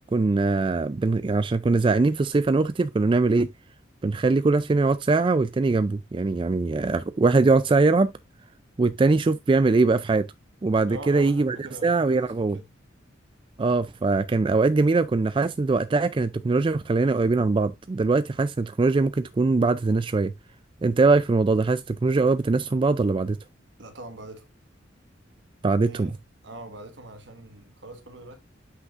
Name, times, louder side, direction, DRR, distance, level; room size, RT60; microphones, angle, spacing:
voice 1, 0.1-3.5 4.0-8.1 8.8-10.3 10.6-12.6 13.6-20.3 20.8-23.4 25.6-26.2, right 3 dB, 25° right, 0.3 m, -22 dB
voice 2, 10.9-12.7 23.8-24.5 25.8-26.1 26.4-28.4, right 1 dB, 65° right, 1.5 m, -42 dB
8.0 x 5.9 x 2.4 m
head